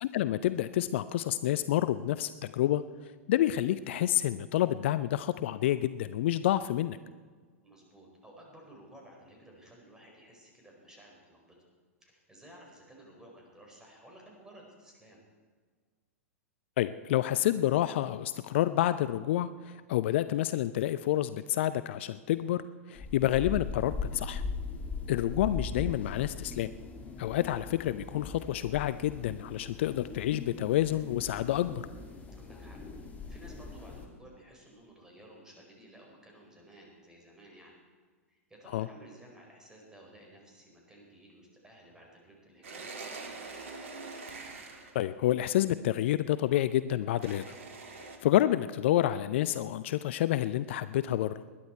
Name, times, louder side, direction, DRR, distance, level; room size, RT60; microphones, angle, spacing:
voice 1, 0.0-7.0 16.8-22.6 22.9-24.4 25.1-26.7 27.2-31.8 38.7-38.9 44.9-47.4 48.0-51.4, left 13 dB, 55° left, 14 dB, 0.5 m, -29 dB
voice 2, 7.6-11.6 12.0-15.2 32.4-32.8 33.3-37.8 38.3-43.4, right 1 dB, 10° right, -1 dB, 4.8 m, -55 dB
sound 1, 23.0-34.1, left 4 dB, 20° left, 2.2 m, -40 dB
sound 2, 42.6-45.0 47.2-48.2, right 3 dB, 65° right, 2.0 m, -44 dB
20.5 x 10.5 x 4.6 m, 1.5 s
figure-of-eight pair, 100°, 8 cm